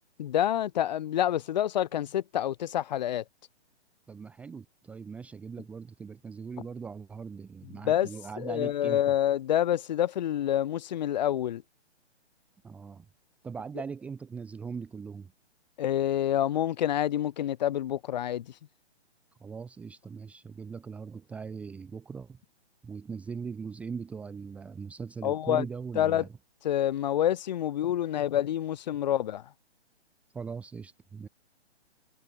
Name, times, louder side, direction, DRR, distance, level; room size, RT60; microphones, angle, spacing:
voice 1, 0.2-3.2 7.8-8.1 8.4-11.6 15.8-18.5 25.2-25.7 26.0-26.2 26.6-29.5, left 11 dB, 40° left, 4.1 m, -27 dB
voice 2, 4.1-9.0 12.6-13.1 13.4-15.3 19.4-22.4 22.8-26.3 30.3-31.3, right 5 dB, 5° right, 1.0 m, -40 dB
hypercardioid pair, 165°, 34 cm